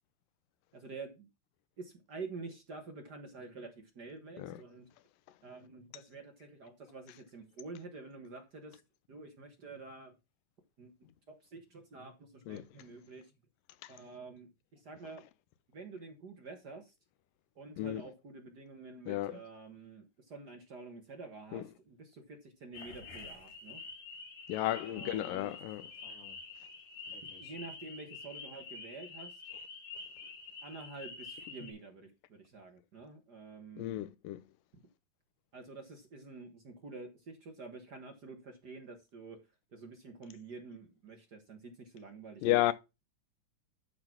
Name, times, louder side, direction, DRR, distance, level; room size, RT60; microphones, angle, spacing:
voice 1, 0.7-1.3 1.8-4.9 5.4-8.8 9.1-10.1 10.8-10.9 11.3-13.3 13.9-15.2 15.7-16.9 17.5-23.8 24.8-25.5 27.2-29.4 30.6-33.8 34.7-34.8 35.5-39.4 39.7-42.7, right 3 dB, 50° right, 1.2 m, -48 dB
voice 2, 19.1-19.4 21.5-21.6 24.5-25.8 33.8-34.4 42.4-42.7, left 14 dB, 85° left, 2.4 m, -32 dB
sound 1, 22.7-31.7, left 4 dB, 70° left, 3.6 m, -47 dB
12.0 x 4.0 x 6.0 m
omnidirectional pair, 3.9 m